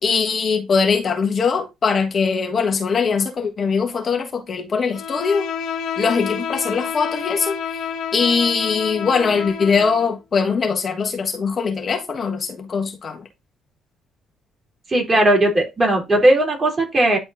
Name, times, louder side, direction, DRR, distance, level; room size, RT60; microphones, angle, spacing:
voice 1, 0.0-5.5 6.0-7.6 8.1-13.2, left 5 dB, 45° left, 1.6 m, -21 dB
Bowed string instrument, 4.9-10.1, left 7 dB, 65° left, 1.0 m, -29 dB
voice 2, 14.9-17.2, right 1 dB, 30° right, 3.6 m, -17 dB
10.5 x 4.4 x 2.7 m
hypercardioid pair, 50°, 0 cm